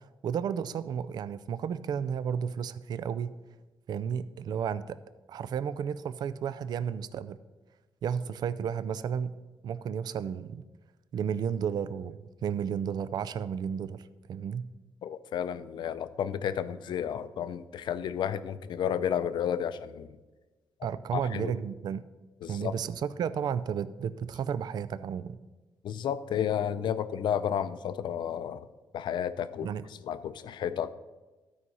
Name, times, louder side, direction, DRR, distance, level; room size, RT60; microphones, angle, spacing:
voice 1, 0.0-3.3 3.9-5.0 5.3-7.4 8.0-9.4 9.6-10.6 11.1-14.7 20.8-22.0 22.5-25.4 29.6-29.9, right 7 dB, 55° right, 15 dB, 0.4 m, -33 dB
voice 2, 15.0-20.1 21.1-21.5 22.4-22.7 25.8-28.7 28.9-29.7 30.0-31.0, left 9 dB, 70° left, 13 dB, 0.5 m, -32 dB
12.5 x 4.8 x 5.4 m, 1.2 s
cardioid pair, 140°, 8 cm